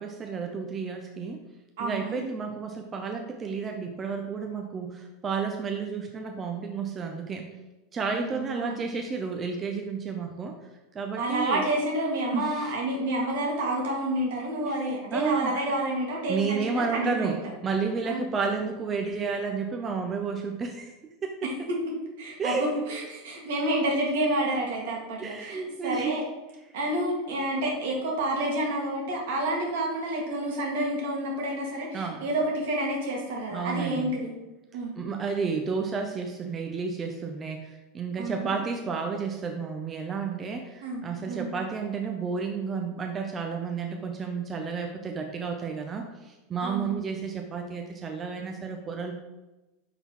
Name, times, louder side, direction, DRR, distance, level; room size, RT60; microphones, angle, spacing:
voice 1, 0.0-1.4 1.8-7.5 7.9-10.5 10.9-11.6 12.3-12.7 14.6-14.7 15.1-15.5 16.3-17.4 17.6-20.9 21.2-21.4 22.4-22.8 25.2-26.1 31.9-32.2 33.5-34.1 35.0-49.1, right 5 dB, 30° right, 3 dB, 0.7 m, -31 dB
voice 2, 1.8-2.2 8.1-8.8 11.1-17.4 18.0-18.2 21.4-21.8 22.2-26.2 26.7-34.3 34.7-35.0 38.2-38.5 40.8-41.5 46.6-47.0, right 1 dB, 80° right, -2 dB, 1.9 m, -29 dB
5.4 x 4.0 x 4.6 m, 1.1 s
hypercardioid pair, 105°, 0 cm